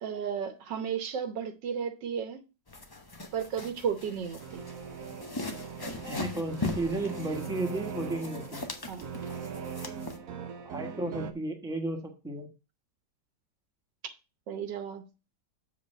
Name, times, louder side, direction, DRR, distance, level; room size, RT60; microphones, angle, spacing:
voice 1, 0.0-2.4 3.3-4.6 8.9-9.0 14.5-15.0, right 7 dB, 90° right, 1.7 m, -33 dB
sound 1, 2.7-10.2, left 3 dB, 30° left, 0.4 m, -40 dB
sound 2, 4.4-11.3, right 7 dB, 60° right, 1.1 m, -40 dB
voice 2, 6.1-8.6 10.6-12.5, right 2 dB, ahead, 1.1 m, -33 dB
7.2 x 3.6 x 6.4 m
omnidirectional pair, 1.9 m